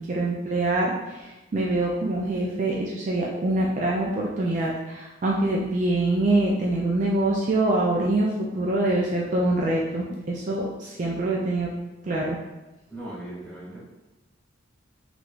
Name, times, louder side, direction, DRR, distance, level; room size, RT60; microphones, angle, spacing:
voice 1, 0.0-11.7 12.0-12.4, right 2 dB, 40° right, -3 dB, 0.3 m, -25 dB
voice 2, 12.9-13.8, right 1 dB, 10° left, -9 dB, 1.3 m, -38 dB
3.3 x 3.0 x 2.4 m, 1.1 s
head